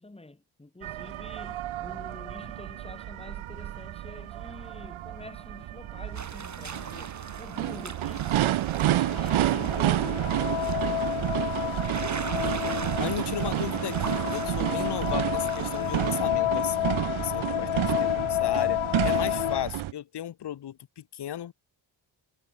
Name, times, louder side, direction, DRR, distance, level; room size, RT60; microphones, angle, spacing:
voice 1, 0.0-11.8 17.6-17.8, left 2 dB, 10° left, 2.1 m, -47 dB
sound 1, 0.8-19.9, right 14 dB, 85° right, 1.0 m, -30 dB
sound 2, 6.1-16.2, right 5 dB, 35° right, 2.4 m, -41 dB
sound 3, 8.7-19.6, left 16 dB, 80° left, 0.7 m, -30 dB
voice 2, 12.9-21.5, left 11 dB, 60° left, 1.0 m, -35 dB
cardioid pair, 85°, 47 cm